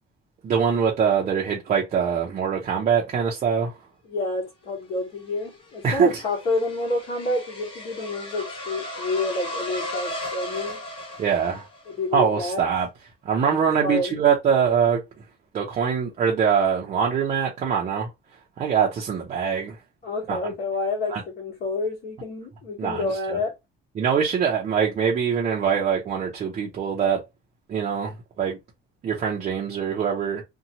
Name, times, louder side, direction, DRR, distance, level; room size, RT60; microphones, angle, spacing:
voice 1, 0.4-3.7 5.8-6.2 11.2-11.7 12.1-12.9 13.2-15.0 15.5-18.1 18.6-19.8 20.3-20.5 21.1-21.2 22.8-23.4 24.0-27.2 27.7-28.6 29.0-30.4, right 7 dB, 35° right, 0.6 m, -23 dB
voice 2, 4.1-10.8 11.9-12.6 13.8-14.1 20.0-23.6, left 2 dB, 50° left, 1.2 m, -28 dB
sound 1, 5.0-12.1, left 1 dB, 25° left, 0.9 m, -36 dB
2.8 x 2.2 x 2.7 m
cardioid pair, 165°, 21 cm